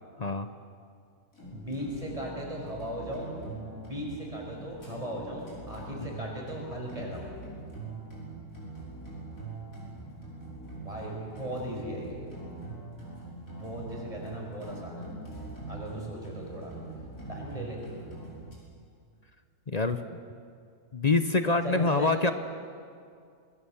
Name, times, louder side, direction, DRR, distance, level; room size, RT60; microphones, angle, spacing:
voice 1, 0.2-0.5 19.7-20.0 20.9-22.3, left 3 dB, 35° left, 9 dB, 0.7 m, -25 dB
sound 1, 1.3-18.5, right 3 dB, 60° left, 6.0 m, -43 dB
voice 2, 1.5-3.3 3.7-7.3 10.8-12.5 13.4-15.1 15.7-16.7 17.3-17.8 21.6-22.2, equal, 20° right, -1 dB, 5.6 m, -38 dB
26.5 x 20.0 x 7.3 m, 2.3 s
omnidirectional pair, 1.6 m